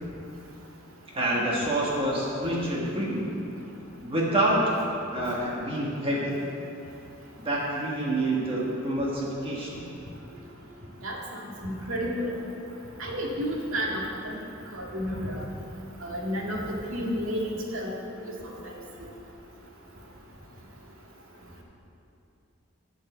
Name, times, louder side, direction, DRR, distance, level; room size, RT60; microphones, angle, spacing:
voice 1, 1.1-3.3 4.0-4.6 5.1-6.3 7.4-9.8, right 1 dB, 25° right, -4 dB, 1.4 m, -27 dB
voice 2, 11.0-12.3 13.0-14.3 14.7-15.4 16.0-17.9 18.6-18.7, equal, 85° right, -2 dB, 1.9 m, -31 dB
11.5 x 5.4 x 7.9 m, 2.8 s
head